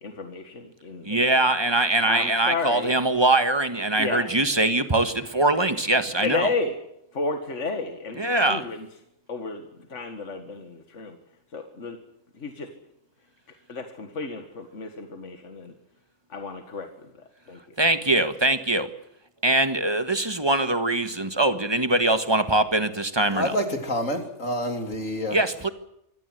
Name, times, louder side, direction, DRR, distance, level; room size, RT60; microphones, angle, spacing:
voice 1, 0.0-1.6 2.0-2.9 4.0-4.3 6.2-6.8 7.1-8.9 9.3-11.2 11.5-12.0 12.3-12.7 13.7-15.7 16.3-17.8, left 3 dB, 65° left, 6 dB, 2.1 m, -32 dB
voice 2, 1.0-6.5 8.2-8.6 17.8-18.9 19.4-23.5 25.3-25.7, right 2 dB, 20° right, 10 dB, 1.5 m, -22 dB
voice 3, 23.3-25.4, equal, 85° left, 5 dB, 3.7 m, -27 dB
25.0 x 17.0 x 7.9 m, 0.79 s
omnidirectional pair, 1.3 m